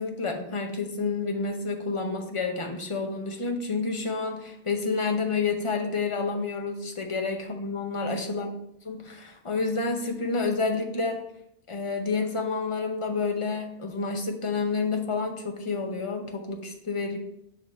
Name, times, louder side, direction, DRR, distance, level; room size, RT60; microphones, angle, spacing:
voice 1, 0.0-8.5 8.8-11.2 11.7-17.2, left 4 dB, 30° left, 3 dB, 0.7 m, -29 dB
6.6 x 2.9 x 5.0 m, 0.76 s
omnidirectional pair, 1.1 m